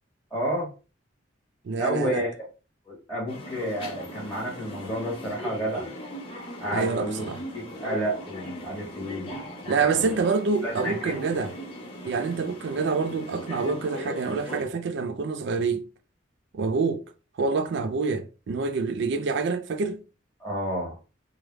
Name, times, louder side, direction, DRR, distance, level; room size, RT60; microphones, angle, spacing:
voice 1, 0.3-0.7 1.8-2.5 2.9-5.9 6.6-7.3 7.5-9.3 9.6-10.2 10.6-11.5 20.4-21.0, equal, 10° left, 1.3 m, -31 dB
voice 2, 1.6-2.2 6.7-7.4 9.7-11.5 12.0-15.9 16.5-17.0 17.4-20.0, right 4 dB, 60° right, 0.4 m, -27 dB
sound 1, 3.3-14.6, equal, 25° left, 0.8 m, -39 dB
3.2 x 2.4 x 3.0 m
head